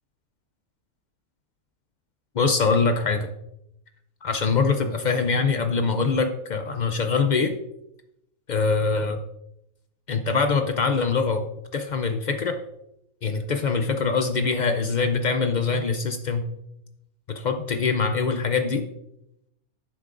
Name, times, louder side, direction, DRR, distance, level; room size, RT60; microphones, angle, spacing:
voice 1, 2.3-3.3 4.2-7.5 8.5-9.2 10.1-11.5 11.7-12.6 13.2-16.4 17.3-18.8, left 4 dB, 85° left, 6 dB, 0.4 m, -23 dB
10.5 x 8.2 x 2.5 m, 0.84 s
omnidirectional pair, 1.5 m